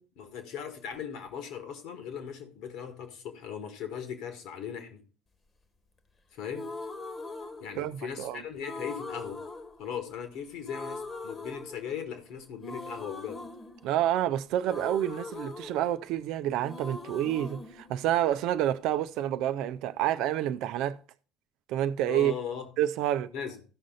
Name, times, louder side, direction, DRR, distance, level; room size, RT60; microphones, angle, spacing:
voice 1, 0.0-5.0 6.3-6.7 7.6-9.5 9.8-13.5 22.1-22.7 23.3-23.6, left 8 dB, 60° left, 1.8 m, -38 dB
sound 1, 6.5-8.2 8.6-10.4 10.7-12.2 12.6-16.3 16.6-18.7, left 3 dB, 30° left, 1.4 m, -41 dB
voice 2, 7.8-8.4 13.8-21.0 21.7-22.3 22.8-23.3, right 12 dB, 60° right, 0.6 m, -28 dB
14.0 x 6.2 x 4.0 m
figure-of-eight pair, 60°, 0 cm